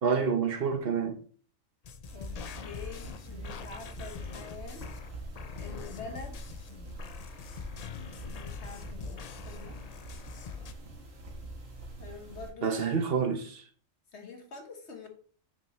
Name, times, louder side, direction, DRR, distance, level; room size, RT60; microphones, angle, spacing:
voice 1, 0.0-1.2 12.6-13.6, right 6 dB, 50° right, 1.0 m, -28 dB
sound 1, 1.8-10.7, left 5 dB, 75° left, 0.3 m, -43 dB
voice 2, 2.1-4.9 5.5-6.6 8.3-9.8 12.0-13.0 14.1-15.1, left 4 dB, 60° left, 1.6 m, -46 dB
sound 2, 2.1-12.5, right 2 dB, 80° right, 2.0 m, -45 dB
6.9 x 6.0 x 3.1 m
omnidirectional pair, 1.4 m